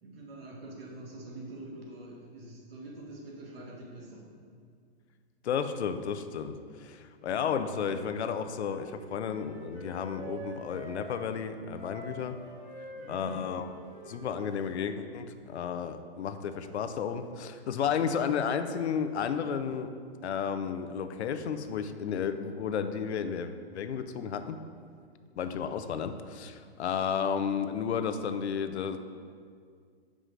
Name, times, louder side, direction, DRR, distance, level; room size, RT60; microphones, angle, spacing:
voice 1, 0.0-4.3 12.9-13.5, right 2 dB, 60° right, -1 dB, 1.6 m, -44 dB
voice 2, 5.4-12.4 13.1-13.6 14.1-19.9 20.2-24.6 25.4-29.0, left 7 dB, 85° left, 9 dB, 0.6 m, -32 dB
Wind instrument woodwind instrument, 8.1-11.2 11.7-15.0, right 1 dB, 10° right, 1.3 m, -47 dB
6.6 x 4.9 x 3.8 m, 2.1 s
hypercardioid pair, 165°, 32 cm